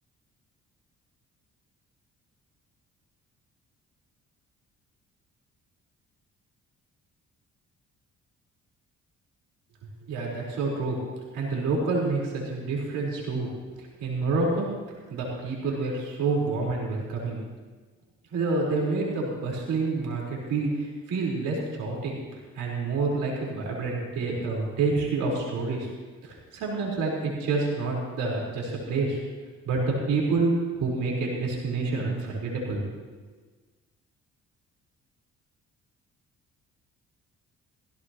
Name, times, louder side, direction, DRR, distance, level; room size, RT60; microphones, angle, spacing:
voice 1, 10.1-11.0 11.3-13.5 14.0-14.7 15.1-17.4 18.3-22.2 22.5-25.9 26.2-29.2 29.6-32.8, right 3 dB, 85° right, -3 dB, 4.6 m, -28 dB
16.5 x 16.5 x 3.1 m, 1.4 s
cardioid pair, 90°, 30 cm